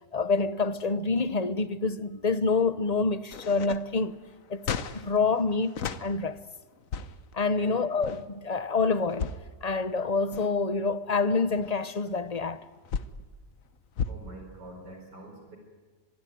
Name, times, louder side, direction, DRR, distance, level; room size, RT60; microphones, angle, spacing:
voice 1, 0.1-4.1 4.5-4.7 4.9-5.7 6.0-6.4 7.3-9.3 9.6-12.6, left 4 dB, 35° left, 0.7 m, -27 dB
sound 1, 3.3-6.1 6.7-7.3 7.9-8.2 9.0-9.5 10.1-10.7 11.2-13.2 14.0-14.1, left 6 dB, 50° left, 1.3 m, -35 dB
voice 2, 14.0-15.6, right 1 dB, 65° right, 5.3 m, -45 dB
25.5 x 21.5 x 9.4 m
omnidirectional pair, 2.0 m